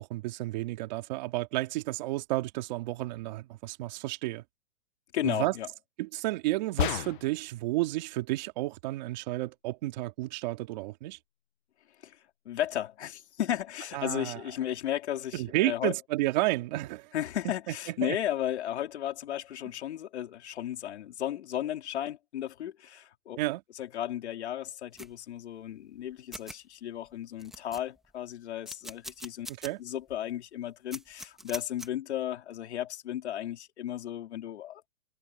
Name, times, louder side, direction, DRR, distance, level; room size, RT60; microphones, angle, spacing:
voice 1, 0.0-4.4 5.2-5.5 6.0-11.2 13.9-14.4 15.3-17.1 17.4-17.7 18.0-18.2 23.4-23.6 29.5-29.8, right 19 dB, 40° right, 2.5 m, -31 dB
voice 2, 5.1-5.7 12.0-12.2 12.4-15.9 17.1-23.4 23.8-29.5 29.8-34.9, left 11 dB, 65° left, 4.2 m, -34 dB
sound 1, 6.8-7.5, left 13 dB, 45° left, 1.0 m, -31 dB
sound 2, 25.0-25.1 26.0-26.1 26.3-26.6 27.1-27.2 27.4-28.1 28.7-29.7 30.1-30.2 30.9-31.9, right 1 dB, ahead, 1.5 m, -43 dB
hypercardioid pair, 165°, 36 cm